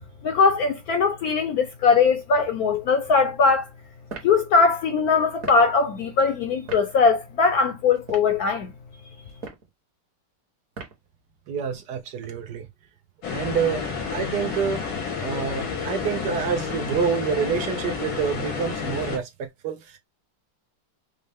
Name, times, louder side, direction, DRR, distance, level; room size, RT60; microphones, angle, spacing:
voice 1, 0.2-3.7 4.2-8.7, left 5 dB, 70° left, 0.9 m, -20 dB
sound 1, 4.1-4.4 5.4-5.7 6.7-6.9 8.0-8.4 9.3-9.7 10.7-11.1, right 4 dB, 50° right, 1.4 m, -37 dB
voice 2, 11.5-12.7 13.3-13.8 14.1-14.8 15.2-20.0, right 7 dB, 70° right, 1.1 m, -27 dB
sound 2, 13.2-19.2, left 5 dB, 90° left, 2.1 m, -30 dB
5.3 x 2.0 x 3.4 m
omnidirectional pair, 2.1 m